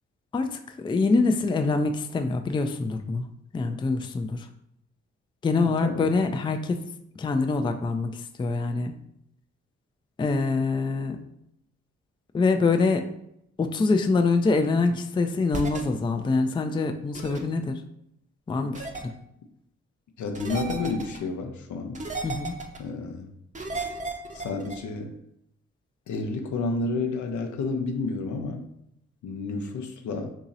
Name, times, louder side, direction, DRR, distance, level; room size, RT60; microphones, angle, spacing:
voice 1, 0.3-3.3 3.5-4.5 5.4-6.9 7.2-8.9 10.2-11.2 12.3-13.1 13.6-17.8 18.5-18.9 22.2-22.6, left 3 dB, 15° left, 6 dB, 0.3 m, -25 dB
voice 2, 5.6-6.1 20.2-22.0 22.8-23.3 24.3-25.1 26.1-28.7 29.2-30.3, left 3 dB, 70° left, 5 dB, 0.6 m, -30 dB
sound 1, 15.5-15.8 17.1-17.4 18.7-19.0 20.3-21.2 21.9-22.8 23.5-24.8, right 3 dB, 25° right, 0.7 m, -34 dB
2.9 x 2.7 x 3.8 m, 0.78 s
supercardioid pair, 50°, 31 cm